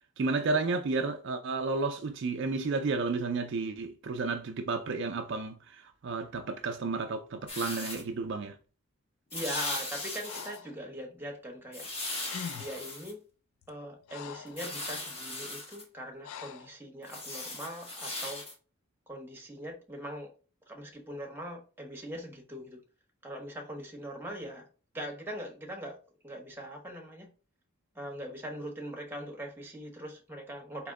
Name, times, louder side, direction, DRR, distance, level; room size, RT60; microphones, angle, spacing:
voice 1, 0.2-8.6, right 3 dB, 50° right, 0.4 m, -32 dB
sound 1, 7.5-8.0 9.3-10.6 11.7-13.1 14.5-15.8 17.0-18.5, left 2 dB, 25° left, 1.1 m, -38 dB
voice 2, 9.3-11.9 12.5-13.2 13.7-18.4 19.1-20.3 20.7-22.8 23.2-24.7 24.9-26.0 26.2-27.3 27.9-30.9, equal, 10° right, 0.8 m, -41 dB
Breathing, 10.2-10.8 11.9-12.0 12.2-12.9 13.6-14.6 16.2-16.7, left 7 dB, 70° left, 0.4 m, -43 dB
4.2 x 3.0 x 3.6 m
head